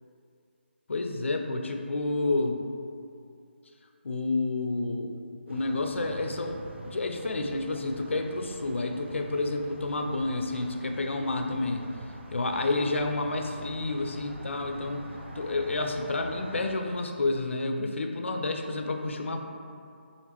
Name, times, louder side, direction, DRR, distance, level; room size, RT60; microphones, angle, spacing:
voice 1, 0.9-2.6 4.0-5.1 5.5-11.8 12.3-15.1 15.4-19.4, left 2 dB, 75° left, 4 dB, 0.4 m, -30 dB
sound 1, 5.5-16.7, right 1 dB, 65° right, 0.5 m, -45 dB
3.4 x 2.4 x 2.9 m, 2.4 s
figure-of-eight pair, 155°, 7 cm